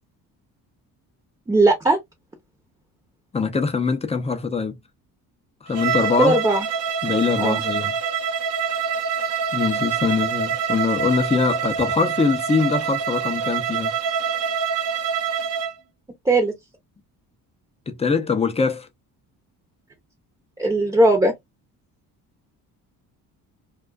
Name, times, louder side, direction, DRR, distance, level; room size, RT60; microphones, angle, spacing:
voice 1, 1.5-2.0 6.2-6.7 7.4-7.6 16.2-16.5 20.6-21.3, right 2 dB, 10° right, 0.7 m, -18 dB
voice 2, 3.3-4.8 5.6-6.4 7.0-7.9 9.5-13.9 17.9-18.9, left 5 dB, 15° left, 0.5 m, -23 dB
Bowed string instrument, 5.7-15.7, right 7 dB, 45° right, 0.6 m, -25 dB
2.3 x 2.3 x 2.3 m
cardioid pair, 90°, 37 cm